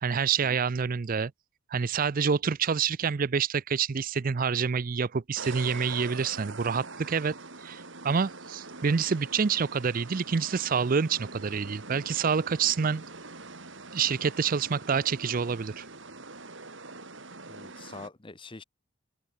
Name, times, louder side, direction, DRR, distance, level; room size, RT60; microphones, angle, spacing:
voice 1, 0.0-1.3 1.7-7.4 7.6-13.0 13.9-15.8, right 6 dB, 40° right, 0.4 m, -27 dB
sound 1, 5.3-18.1, right 3 dB, 60° right, 4.2 m, -44 dB
voice 2, 17.5-18.6, left 3 dB, 25° left, 0.9 m, -45 dB
open air
head